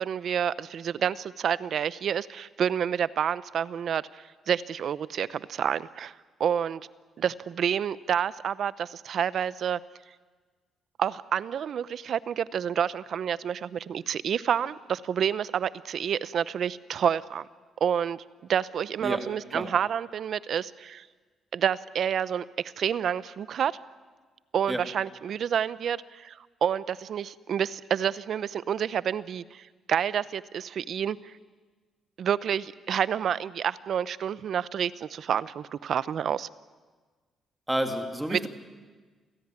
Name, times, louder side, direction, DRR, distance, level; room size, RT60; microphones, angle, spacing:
voice 1, 0.0-6.8 7.2-9.8 11.0-17.5 17.8-18.2 18.5-21.1 21.5-23.8 24.5-31.3 32.2-36.5 38.3-38.5, right 8 dB, 60° right, 18 dB, 0.8 m, -29 dB
voice 2, 37.7-38.5, right 1 dB, 5° right, 5 dB, 3.1 m, -29 dB
28.0 x 17.0 x 9.7 m, 1.4 s
cardioid pair, 90°, 0 cm